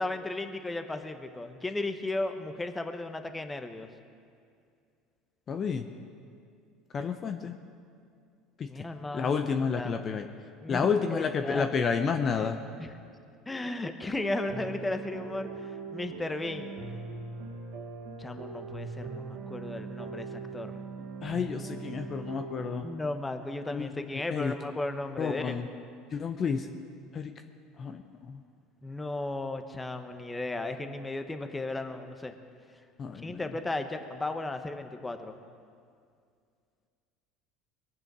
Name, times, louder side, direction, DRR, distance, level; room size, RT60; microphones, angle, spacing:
voice 1, 0.0-3.9 8.6-9.4 9.7-10.0 10.6-11.7 12.8-13.0 13.5-16.7 18.2-20.7 22.8-25.7 28.8-32.3 33.2-35.4, left 2 dB, 15° left, 7 dB, 1.1 m, -35 dB
voice 2, 5.5-5.8 6.9-7.6 9.1-10.2 10.7-12.6 21.2-22.9 23.7-24.5 25.2-25.6 26.1-26.7 27.1-27.3 27.8-28.0 33.0-33.4, left 6 dB, 40° left, 6 dB, 0.8 m, -30 dB
sound 1, 14.0-22.9, right 4 dB, 75° right, 2.1 m, -40 dB
21.5 x 7.6 x 6.2 m, 2.3 s
supercardioid pair, 90°, 0 cm